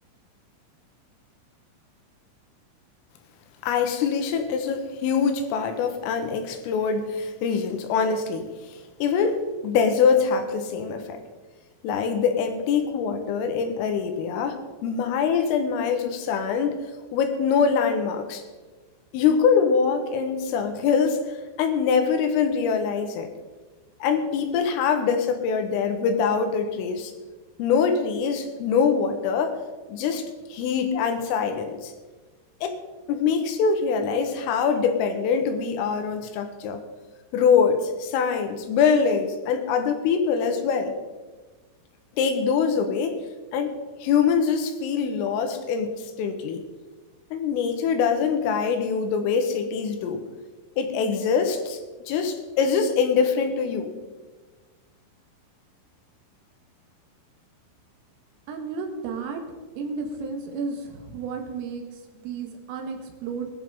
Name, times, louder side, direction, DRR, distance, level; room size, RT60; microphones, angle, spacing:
voice 1, 3.6-11.2 11.8-16.9 17.1-18.4 19.1-23.3 24.0-27.1 27.6-29.6 29.9-30.3 30.5-31.9 32.6-32.7 33.1-36.8 37.3-40.9 42.1-43.2 43.5-46.6 47.3-50.2 50.8-51.8 52.1-53.9, left 6 dB, 85° left, 6 dB, 3.9 m, -24 dB
voice 2, 58.5-59.4 59.8-63.5, right 4 dB, 85° right, 3 dB, 4.3 m, -33 dB
21.0 x 11.0 x 3.8 m, 1.3 s
omnidirectional pair, 5.8 m